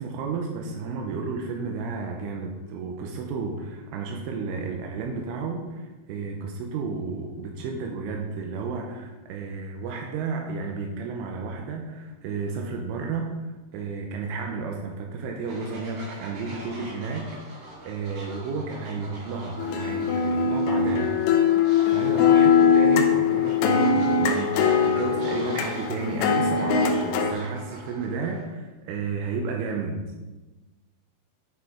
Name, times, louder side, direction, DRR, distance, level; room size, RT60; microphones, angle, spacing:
voice 1, 0.0-13.3 13.7-21.2 21.6-30.0, right 4 dB, 85° right, 2 dB, 3.2 m, -32 dB
Fowl, 15.4-28.4, right 1 dB, 50° right, 3.7 m, -44 dB
sound 1, 19.6-27.3, left 6 dB, 80° left, 2.7 m, -21 dB
10.5 x 4.9 x 4.9 m, 1.2 s
omnidirectional pair, 5.7 m